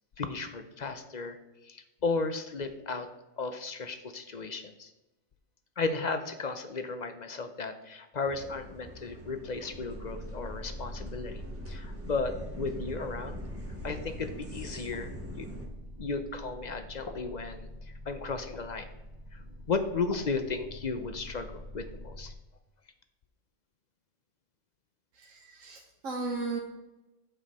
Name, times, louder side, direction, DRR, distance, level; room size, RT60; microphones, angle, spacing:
voice 1, 0.2-1.4 1.6-3.1 3.4-4.9 5.8-11.4 11.7-13.4 13.8-15.5 16.0-17.7 18.1-18.9 19.3-22.3, left 4 dB, 45° left, 9 dB, 0.6 m, -34 dB
sound 1, 8.3-15.7, equal, 10° right, 1.2 m, -44 dB
sound 2, 9.7-22.3, equal, 20° left, 1.0 m, -44 dB
voice 2, 25.1-26.6, right 3 dB, 75° right, 0 dB, 1.4 m, -36 dB
8.9 x 7.1 x 4.2 m, 1.0 s
omnidirectional pair, 1.4 m